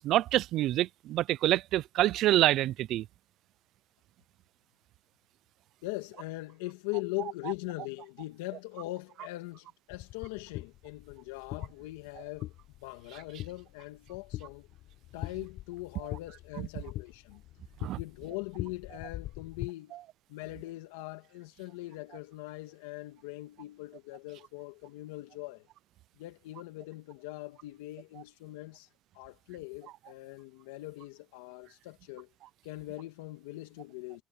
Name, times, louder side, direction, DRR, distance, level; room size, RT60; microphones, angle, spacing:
voice 1, 0.0-3.0 17.8-18.0, right 14 dB, 65° right, 0.6 m, -26 dB
voice 2, 5.8-12.5 12.8-14.7 15.1-17.4 18.0-19.9 20.3-25.6 26.2-28.9 29.1-32.3 32.6-34.2, left 20 dB, 85° left, 2.1 m, -41 dB
sound 1, 9.9-19.7, left 15 dB, 65° left, 3.8 m, -43 dB
supercardioid pair, 85°, 0 cm